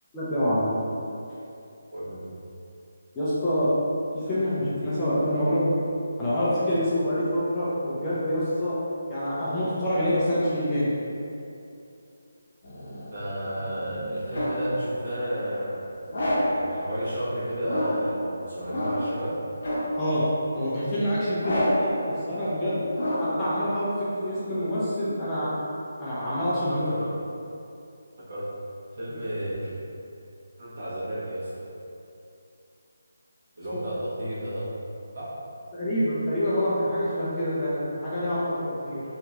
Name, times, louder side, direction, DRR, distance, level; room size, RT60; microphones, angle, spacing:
voice 1, 0.1-0.7 3.1-3.7 4.1-5.6 6.2-8.8 9.1-10.9 20.0-20.2 20.5-25.5 26.0-26.8 35.7-39.0, equal, 15° left, -12 dB, 0.5 m, -26 dB
voice 2, 1.9-2.3 13.1-15.8 16.5-19.3 26.6-27.1 28.3-28.4 28.9-29.7 30.6-31.5 33.6-34.7 35.1-35.3, equal, 50° right, -10 dB, 1.2 m, -32 dB
sound 1, 12.6-14.7 16.1-16.7 17.6-18.1 18.7-19.2 19.6-20.1 21.4-21.9 22.9-23.5, left 1 dB, 55° left, 0.9 m, -28 dB
2.8 x 2.8 x 2.3 m, 2.7 s
figure-of-eight pair, 165°, 0 cm